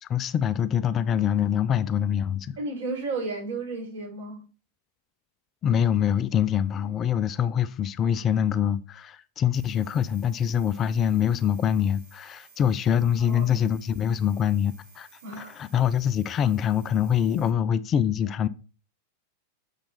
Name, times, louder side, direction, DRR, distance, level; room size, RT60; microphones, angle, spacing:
voice 1, 0.0-2.6 5.6-15.1 15.4-18.5, left 9 dB, 30° left, 0.4 m, -24 dB
voice 2, 2.6-4.4 13.3-13.6 15.2-15.6, right 3 dB, 60° right, 4.7 m, -33 dB
sound 1, 9.5-17.5, right 4 dB, 45° right, 3.1 m, -55 dB
7.0 x 5.2 x 4.2 m
figure-of-eight pair, 90°, 0 cm